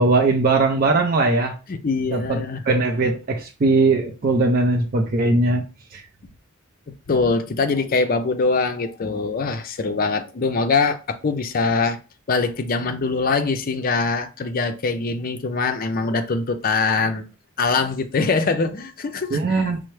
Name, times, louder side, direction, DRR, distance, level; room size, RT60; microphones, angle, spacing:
voice 1, 0.0-1.5 2.1-2.4 2.7-5.6 5.9-6.0 19.3-19.8, right 3 dB, 45° right, 0.5 m, -19 dB
voice 2, 1.7-2.6 7.1-12.0 12.3-17.2 17.6-19.7, left 4 dB, 45° left, 0.5 m, -23 dB
5.5 x 2.0 x 3.1 m
head